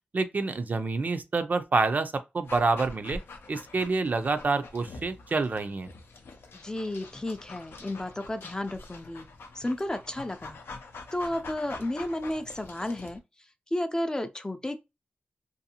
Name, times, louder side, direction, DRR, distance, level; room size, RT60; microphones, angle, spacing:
voice 1, 0.1-3.2 3.5-5.9, right 3 dB, 50° right, 0.4 m, -27 dB
Dog, 2.5-13.2, left 3 dB, 90° left, 0.5 m, -45 dB
voice 2, 6.5-9.3 9.5-10.6 11.1-13.2 13.7-14.8, left 1 dB, 20° left, 0.4 m, -32 dB
2.6 x 2.3 x 2.8 m
wide cardioid pair, 75°, 4 cm